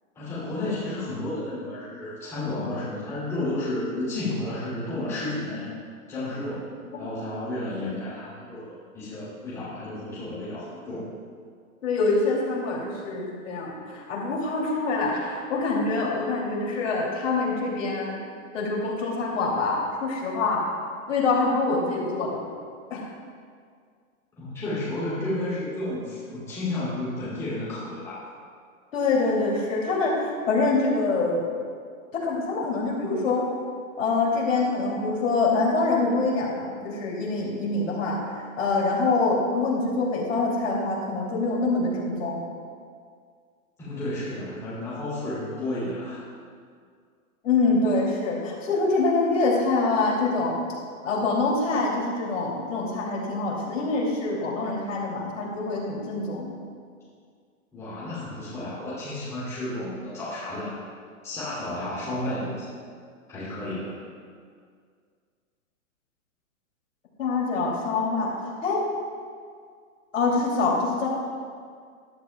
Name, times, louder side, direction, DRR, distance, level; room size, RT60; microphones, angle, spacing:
voice 1, 0.1-5.7 6.1-6.7 7.0-11.1 24.4-28.2 43.8-46.2 57.7-60.7 61.2-62.6 63.3-63.9, left 1 dB, 5° left, -12 dB, 2.8 m, -32 dB
voice 2, 11.8-18.1 18.5-20.6 21.1-22.5 22.9-23.0 28.9-31.4 32.1-33.4 34.0-42.4 47.4-50.6 51.0-56.5 67.2-68.3 68.6-68.8 70.1-71.1, left 3 dB, 60° left, -3 dB, 3.0 m, -25 dB
14.5 x 12.0 x 2.3 m, 2.1 s
hypercardioid pair, 175°, 43 cm